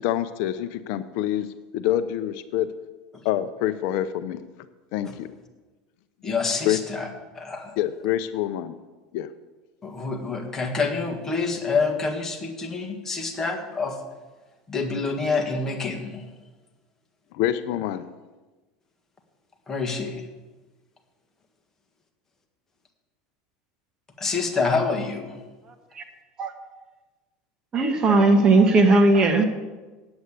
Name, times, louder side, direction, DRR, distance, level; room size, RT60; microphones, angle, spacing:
voice 1, 0.0-1.5 1.7-2.7 3.2-4.4 4.9-5.3 6.7-6.8 7.8-8.7 9.1-9.3 17.3-18.0, left 12 dB, 65° left, 12 dB, 0.5 m, -26 dB
voice 2, 6.2-7.1 7.3-7.7 9.8-14.0 14.7-16.2 19.7-20.2 24.2-25.4, left 4 dB, 15° left, 2 dB, 1.7 m, -27 dB
voice 3, 27.7-29.4, right 2 dB, 25° right, 6 dB, 1.3 m, -17 dB
8.8 x 8.0 x 8.2 m, 1.2 s
supercardioid pair, 145°, 3 cm